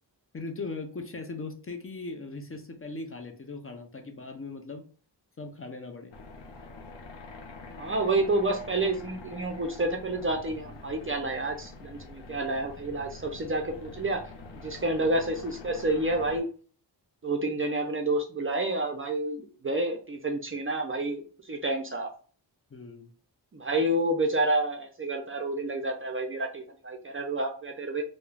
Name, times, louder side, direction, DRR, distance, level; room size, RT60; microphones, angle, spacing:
voice 1, 0.3-4.8 5.4-6.1 22.7-23.1, left 3 dB, 35° left, 4 dB, 0.4 m, -39 dB
sound 1, 6.1-16.4, left 3 dB, 85° left, 0.6 m, -45 dB
voice 2, 7.8-14.2 14.5-16.5 17.2-22.1 23.5-28.0, right 2 dB, 30° right, 3 dB, 0.4 m, -29 dB
2.3 x 2.0 x 3.1 m, 0.41 s
wide cardioid pair, 70°, 43 cm